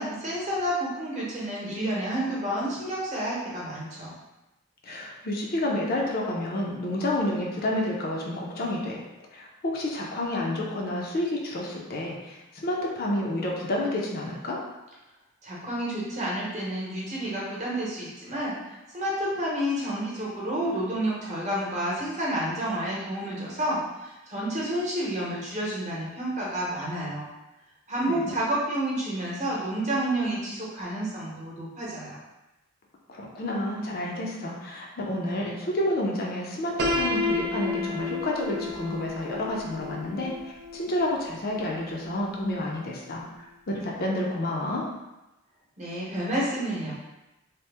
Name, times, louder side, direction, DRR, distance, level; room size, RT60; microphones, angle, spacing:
voice 1, 0.0-4.1 15.4-18.5 18.9-23.8 24.0-27.3 27.9-32.2 45.8-46.9, right 1 dB, 35° right, -6 dB, 0.8 m, -30 dB
voice 2, 4.8-9.0 9.3-14.6 28.1-28.3 33.1-43.5 43.8-44.9, left 1 dB, 50° left, -2 dB, 0.5 m, -30 dB
Piano, 36.8-42.7, left 2 dB, 55° right, 0.4 m, -32 dB
2.8 x 2.0 x 3.3 m, 0.99 s
head